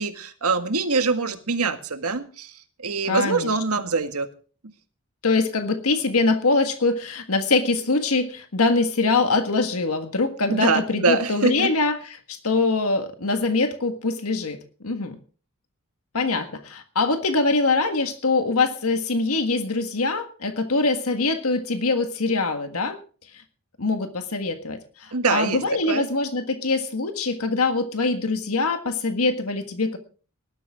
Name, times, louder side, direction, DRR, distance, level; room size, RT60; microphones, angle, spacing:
voice 1, 0.0-2.5 2.8-4.3 10.5-11.7 25.1-25.6 25.9-26.1, right 4 dB, 85° right, 8 dB, 1.8 m, -24 dB
voice 2, 3.1-3.5 5.2-15.2 16.1-23.0 23.8-30.0, left 3 dB, 75° left, 7 dB, 1.6 m, -23 dB
19.5 x 12.0 x 3.7 m, 0.39 s
head